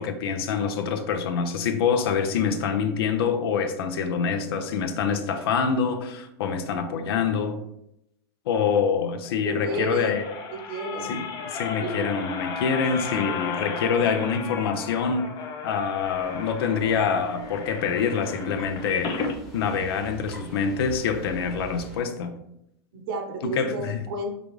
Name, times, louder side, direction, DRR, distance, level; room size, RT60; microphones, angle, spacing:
voice 1, 0.0-7.6 8.5-10.3 11.1-11.2 11.5-15.3 15.6-19.2 19.5-22.3 23.4-24.0, left 6 dB, 80° left, 8 dB, 0.6 m, -25 dB
sound 1, 9.2-19.4 19.9-20.0 20.2-20.3, left 5 dB, 35° left, 0.6 m, -34 dB
voice 2, 9.3-10.2 10.5-11.2 11.8-12.0 13.3-13.4 22.9-24.3, right 2 dB, 70° right, 3 dB, 0.9 m, -32 dB
sound 2, 16.0-22.0, right 4 dB, ahead, 0.9 m, -45 dB
4.9 x 2.4 x 3.1 m, 0.81 s
supercardioid pair, 125°, 13 cm